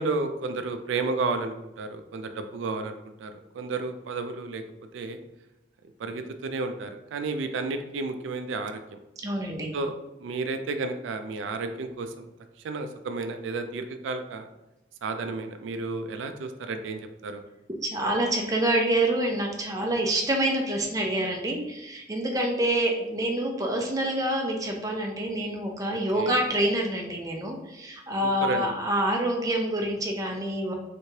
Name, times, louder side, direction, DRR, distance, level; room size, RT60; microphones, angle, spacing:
voice 1, 0.0-4.6 4.9-5.2 6.0-9.0 9.7-9.9 10.2-12.3 12.6-14.5 15.0-17.4 25.9-26.4 28.4-28.7, right 3 dB, 85° right, 7 dB, 0.3 m, -32 dB
voice 2, 9.2-9.7 17.8-30.7, right 1 dB, 20° right, 1 dB, 0.4 m, -27 dB
3.3 x 3.1 x 2.8 m, 0.95 s
head